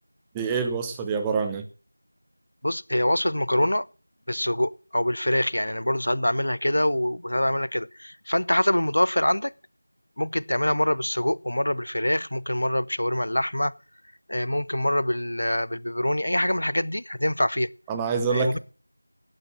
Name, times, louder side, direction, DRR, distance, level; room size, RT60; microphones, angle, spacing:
voice 1, 0.3-1.6 17.9-18.6, right 5 dB, 5° right, 0.6 m, -26 dB
voice 2, 2.6-3.9 4.3-9.5 10.2-13.7 14.3-17.7 18.3-18.6, left 1 dB, 60° left, 0.7 m, -25 dB
12.0 x 9.7 x 6.2 m
figure-of-eight pair, 175°, 0 cm